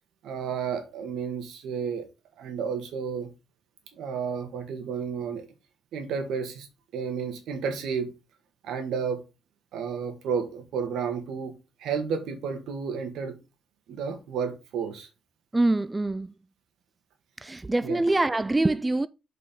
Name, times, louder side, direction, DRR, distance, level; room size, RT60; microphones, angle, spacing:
voice 1, 0.2-2.1 2.4-3.3 3.9-5.5 5.9-6.7 6.9-8.1 8.6-9.2 9.7-13.4 13.9-15.1 17.8-18.0, right 6 dB, 80° right, 2.0 m, -31 dB
voice 2, 15.5-16.3 17.4-19.1, right 2 dB, 15° right, 0.4 m, -24 dB
7.2 x 5.1 x 3.8 m
cardioid pair, 90°, 0 cm